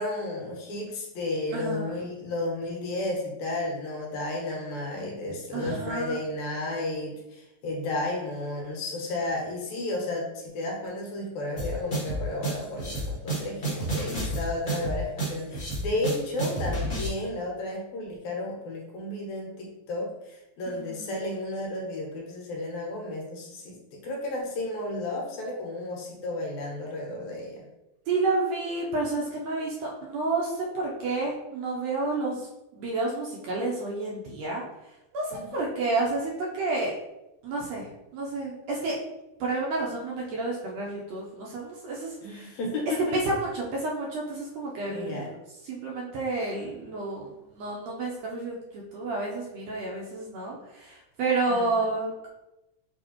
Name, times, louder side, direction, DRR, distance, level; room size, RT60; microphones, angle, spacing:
voice 1, 0.0-27.6 35.3-35.7 42.2-43.2 44.8-45.3 51.5-51.9, left 2 dB, 70° left, -1 dB, 2.2 m, -33 dB
voice 2, 1.5-1.9 5.5-6.2 20.8-21.2 28.1-32.5 32.7-34.6 35.1-36.9 37.4-38.9 39.4-42.5 43.1-45.3 45.6-52.3, right 3 dB, 75° right, -3 dB, 1.7 m, -30 dB
sound 1, 11.6-17.1, right 1 dB, 50° left, 0.6 m, -30 dB
6.3 x 2.8 x 2.9 m, 0.95 s
omnidirectional pair, 3.5 m